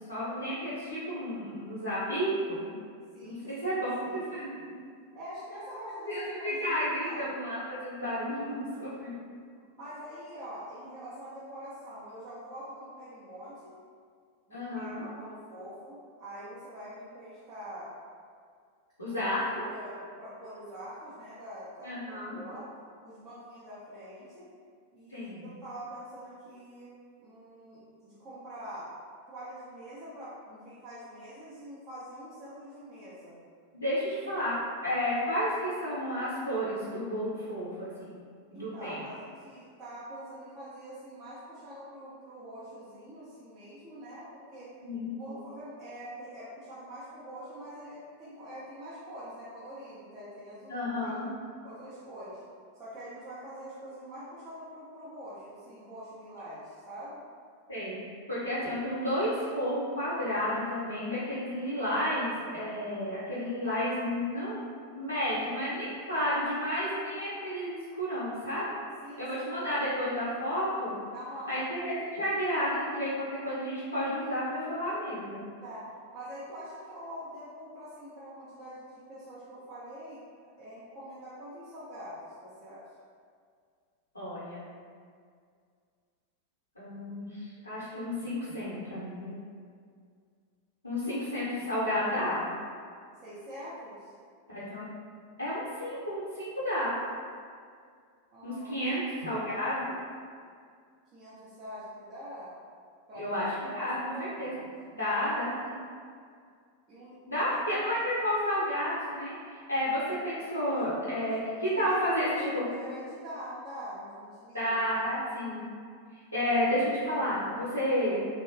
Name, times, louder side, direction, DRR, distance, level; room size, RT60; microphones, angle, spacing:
voice 1, 0.0-2.7 3.2-4.5 6.1-9.1 14.5-15.1 19.0-19.7 21.8-22.4 25.1-25.5 33.7-34.5 34.8-38.1 38.5-39.0 44.8-45.1 50.7-51.3 57.7-64.6 64.9-68.7 69.2-70.9 71.5-75.4 84.1-84.7 86.8-89.4 90.8-92.5 94.5-94.9 95.4-96.9 98.4-100.0 103.2-104.5 104.9-105.8 107.3-112.6 114.5-115.7 116.1-118.2, equal, 85° left, -10 dB, 0.5 m, -31 dB
voice 2, 3.1-4.3 5.1-7.3 9.7-13.7 14.5-17.9 19.1-19.3 19.7-22.7 23.0-24.4 24.9-26.9 27.2-28.9 29.3-33.4 34.2-34.4 38.5-44.7 45.2-51.2 51.6-52.4 52.8-57.2 69.0-69.3 69.6-69.8 71.1-71.7 75.6-80.3 80.6-82.8 93.2-94.1 98.3-98.9 101.1-102.5 103.1-103.3 103.8-104.6 106.9-108.0 110.6-110.8 111.2-114.7, equal, 35° right, -11 dB, 0.6 m, -45 dB
2.9 x 2.1 x 2.4 m, 2.1 s
figure-of-eight pair, 90°, 0 cm